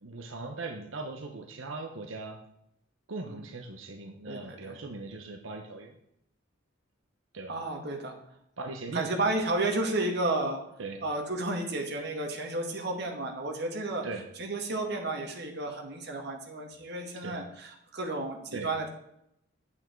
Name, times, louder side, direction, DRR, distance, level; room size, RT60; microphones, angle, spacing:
voice 1, 0.0-2.4 3.1-5.9 7.3-7.5 8.6-9.1 10.8-11.0 14.0-14.2 17.2-17.4 18.5-18.7, right 3 dB, 90° right, 3 dB, 1.0 m, -39 dB
voice 2, 4.3-4.8 7.5-8.2 8.9-10.6 11.0-14.0 14.4-18.9, right 2 dB, 55° right, 2 dB, 2.0 m, -32 dB
9.0 x 8.5 x 4.6 m, 0.77 s
head